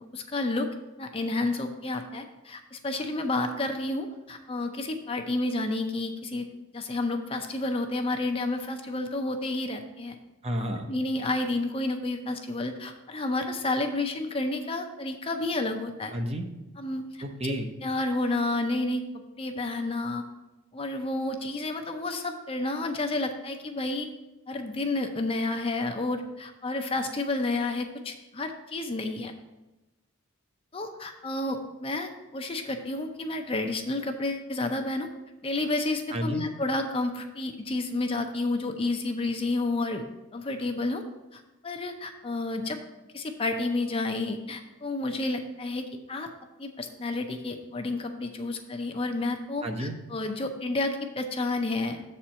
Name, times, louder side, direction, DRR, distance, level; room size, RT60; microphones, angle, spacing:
voice 1, 0.1-0.7 1.0-6.5 6.7-10.2 10.9-16.1 16.8-17.2 17.8-19.0 19.4-20.2 20.7-24.1 24.5-29.3 30.7-35.1 35.4-40.0 40.3-41.0 41.3-42.8 43.1-46.3 46.6-52.0, left 2 dB, 25° left, 5 dB, 0.5 m, -30 dB
voice 2, 10.4-10.9 16.1-16.5 17.2-17.7 36.1-36.5 49.6-49.9, equal, 30° right, 4 dB, 0.7 m, -31 dB
7.0 x 4.3 x 6.3 m, 1.0 s
head